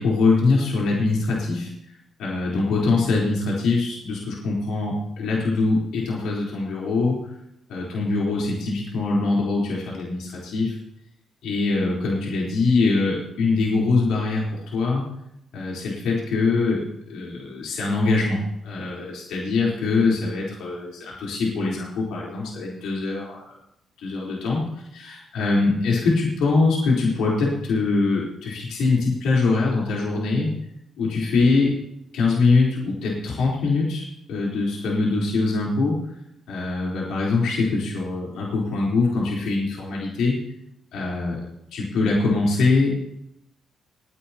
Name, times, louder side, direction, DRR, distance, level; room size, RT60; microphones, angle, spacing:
voice 1, 0.0-1.7 2.2-7.3 7.7-10.8 11.4-15.0 15.5-23.4 24.0-30.6 31.0-31.8 32.1-36.0 36.5-40.4 40.9-41.4 41.7-43.1, left 3 dB, 80° left, -4 dB, 3.9 m, -23 dB
29.0 x 10.0 x 2.9 m, 0.80 s
supercardioid pair, 55°, 0 cm